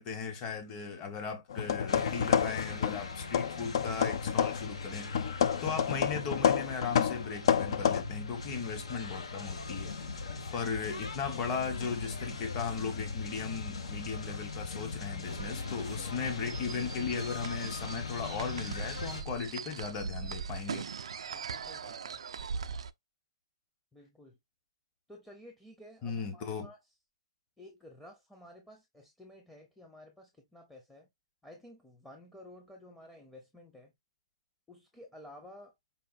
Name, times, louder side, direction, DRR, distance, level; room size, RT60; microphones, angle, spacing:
voice 1, 0.0-5.1 5.6-10.0 10.5-20.9 26.0-26.7, left 5 dB, 25° left, 1.0 m, -37 dB
sound 1, 1.5-3.1 3.3-4.7 5.1-8.0, left 8 dB, 60° left, 0.5 m, -29 dB
sound 2, 1.9-19.2, left 4 dB, 80° left, 1.2 m, -40 dB
sound 3, 15.2-22.9, right 6 dB, 80° right, 0.4 m, -41 dB
voice 2, 21.3-22.2 23.9-24.4 25.1-26.8 27.6-31.1 31.4-33.9 34.7-35.7, left 1 dB, 5° left, 0.7 m, -53 dB
5.3 x 2.6 x 2.4 m
hypercardioid pair, 145°, 3 cm